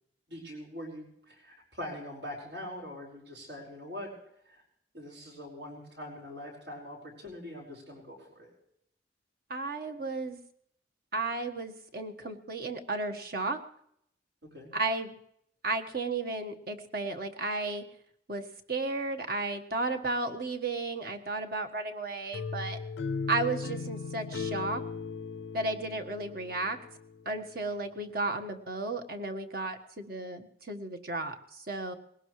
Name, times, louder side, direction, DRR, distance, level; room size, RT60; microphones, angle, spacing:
voice 1, 0.3-4.1 4.4-4.6 4.9-8.5 14.5-14.7, left 1 dB, 80° right, -1 dB, 5.1 m, -43 dB
voice 2, 9.5-10.4 11.1-13.6 14.7-15.2 15.6-17.8 18.3-22.8 23.3-24.8 25.5-26.8 27.2-31.9, right 3 dB, 55° right, 6 dB, 1.5 m, -33 dB
sound 1, 22.3-27.2, left 4 dB, 80° left, 0.5 m, -37 dB
20.5 x 18.5 x 3.2 m, 0.72 s
head